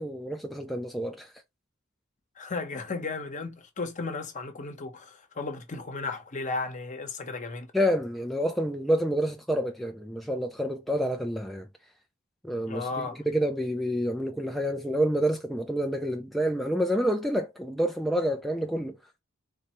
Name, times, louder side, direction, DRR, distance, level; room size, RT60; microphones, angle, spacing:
voice 1, 0.0-1.3 7.7-11.7 12.4-19.0, equal, ahead, 0.3 m, -28 dB
voice 2, 2.4-7.7 12.7-13.2, left 3 dB, 40° left, 0.9 m, -34 dB
4.0 x 2.7 x 3.0 m
head